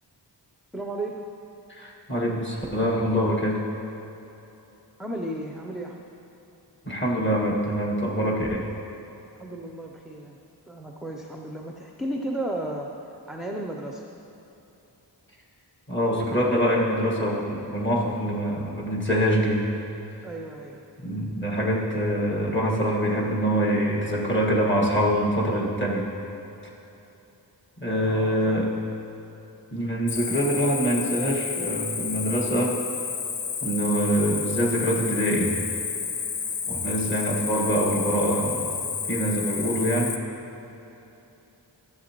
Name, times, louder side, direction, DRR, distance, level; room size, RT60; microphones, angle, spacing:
voice 1, 0.7-1.1 5.0-6.0 9.4-10.4 10.7-12.9 13.3-14.0 20.2-20.8 27.9-28.7, right 1 dB, ahead, 0 dB, 0.5 m, -34 dB
voice 2, 1.7-3.6 6.8-8.6 15.9-19.6 21.0-26.1 27.8-28.7 29.7-32.7 33.6-35.5 36.7-40.1, equal, 25° left, -3 dB, 1.6 m, -24 dB
Cricket, 30.1-40.2, left 6 dB, 90° left, 0.7 m, -31 dB
13.5 x 7.3 x 3.0 m, 3.0 s
wide cardioid pair, 80°, 43 cm